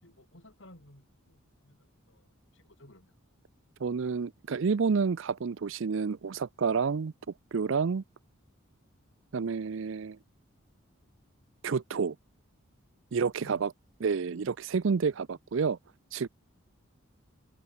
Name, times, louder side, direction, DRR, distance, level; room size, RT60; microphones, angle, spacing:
voice 1, 0.0-1.8 2.1-2.3 2.5-3.1 13.4-13.6, left 1 dB, 65° left, 4.6 m, -55 dB
voice 2, 3.8-7.1 7.5-8.0 9.3-10.2 11.6-12.2 13.1-13.7 14.0-15.8 16.1-16.3, right 5 dB, 65° right, 0.5 m, -29 dB
open air
head